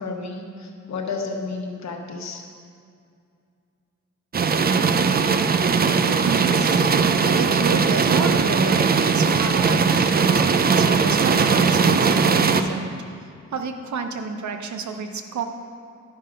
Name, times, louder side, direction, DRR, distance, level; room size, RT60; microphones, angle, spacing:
voice 1, 0.0-2.4, left 4 dB, 65° left, 2 dB, 1.2 m, -31 dB
sound 1, 4.3-12.6, right 5 dB, 35° right, 0.4 m, -19 dB
voice 2, 6.0-13.2 13.5-15.4, right 5 dB, 75° right, 6 dB, 0.8 m, -30 dB
11.5 x 5.6 x 5.1 m, 2.3 s
wide cardioid pair, 135°, 29 cm